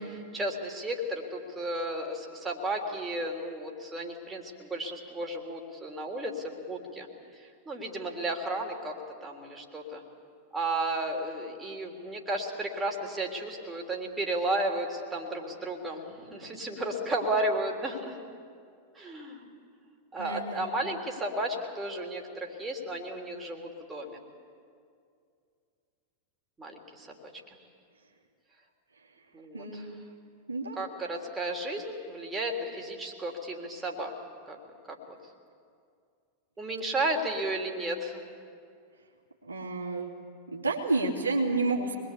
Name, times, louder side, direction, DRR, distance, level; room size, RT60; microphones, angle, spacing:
voice 1, 0.0-7.1 7.4-9.0 9.2-10.0 10.5-18.2 19.0-19.5 20.1-24.2 26.6-27.3 29.3-29.8 30.8-34.1 34.5-34.6 34.9-35.2 36.6-38.2, right 1 dB, 15° right, 0 dB, 3.6 m, -33 dB
voice 2, 20.2-20.7 29.5-29.9 30.5-30.8 39.5-40.1 40.5-42.0, right 3 dB, 80° right, -1 dB, 2.8 m, -30 dB
25.0 x 21.5 x 8.5 m, 2.3 s
figure-of-eight pair, 90°, 0 cm